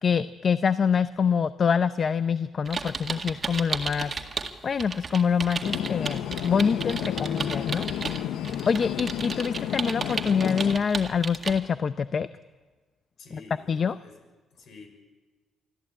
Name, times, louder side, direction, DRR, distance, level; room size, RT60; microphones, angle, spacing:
voice 1, 0.0-4.1 4.6-7.8 8.7-12.3 13.7-13.9, left 6 dB, 45° left, 13 dB, 0.6 m, -25 dB
sound 1, 2.7-4.5 4.8-11.6, right 4 dB, 35° right, 1.9 m, -34 dB
sound 2, 5.6-10.8, left 11 dB, 85° left, 0.7 m, -31 dB
voice 2, 13.2-14.9, left 4 dB, 65° left, 5 dB, 5.8 m, -49 dB
25.0 x 14.0 x 8.8 m, 1.4 s
cardioid pair, 90°, 0 cm